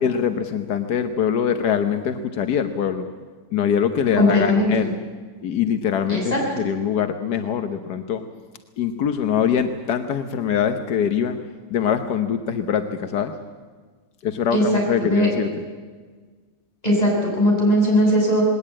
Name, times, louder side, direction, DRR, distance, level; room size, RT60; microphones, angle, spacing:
voice 1, 0.0-3.1 3.5-5.0 5.4-8.2 8.8-11.4 11.7-13.3 14.2-15.5, left 8 dB, 90° left, 8 dB, 1.6 m, -23 dB
voice 2, 4.2-4.7 6.1-6.4 14.5-15.3 16.8-18.4, equal, 25° left, -2 dB, 6.9 m, -19 dB
20.0 x 18.5 x 8.9 m, 1.5 s
omnidirectional pair, 1.7 m